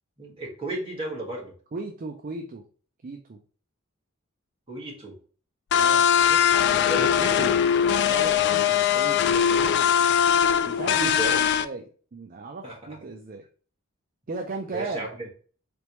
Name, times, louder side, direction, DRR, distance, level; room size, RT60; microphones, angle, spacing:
voice 1, 0.2-1.5 4.7-5.1 6.9-7.5 10.9-11.4 12.6-13.0 14.7-15.3, right 2 dB, 30° right, -4 dB, 1.8 m, -33 dB
voice 2, 1.7-2.6 3.0-3.4 5.7-7.3 8.1-9.8 10.7-11.8 12.1-13.4 14.3-15.1, right 3 dB, 45° right, 3 dB, 0.4 m, -37 dB
sound 1, 5.7-11.6, left 9 dB, 55° left, 0.3 m, -21 dB
4.1 x 3.4 x 3.0 m, 0.41 s
head